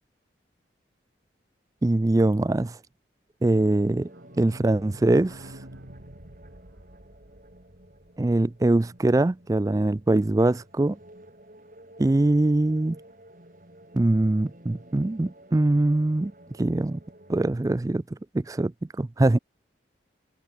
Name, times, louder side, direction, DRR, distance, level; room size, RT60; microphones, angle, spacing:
voice 1, 1.8-2.8 3.4-4.1 4.4-5.5 8.2-11.0 12.0-13.0 13.9-16.3 16.6-17.0 17.3-18.0 18.3-18.7 19.0-19.4, right 2 dB, 20° right, 0.3 m, -22 dB
sound 1, 3.4-17.4, right 1 dB, 45° right, 4.9 m, -52 dB
sound 2, 3.8-9.3 9.6-9.7 9.9-10.0 10.3-10.4, right 1 dB, 85° right, 3.1 m, -48 dB
head